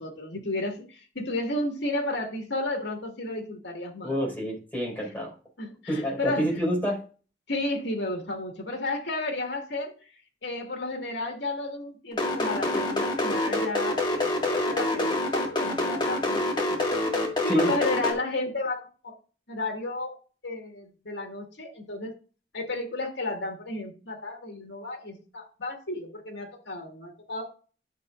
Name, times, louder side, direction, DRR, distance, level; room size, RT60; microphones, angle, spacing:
voice 1, 0.0-4.2 5.6-6.5 7.5-10.1 10.4-16.9 17.4-19.2 19.5-20.1 20.4-22.1 22.5-27.4, left 2 dB, 80° left, 2 dB, 1.9 m, -33 dB
voice 2, 4.0-5.3 5.9-7.0 17.5-17.7, equal, 10° left, -2 dB, 4.8 m, -27 dB
sound 1, 12.1-18.1, left 2 dB, 25° left, 1.9 m, -26 dB
12.0 x 6.5 x 2.5 m, 0.36 s
head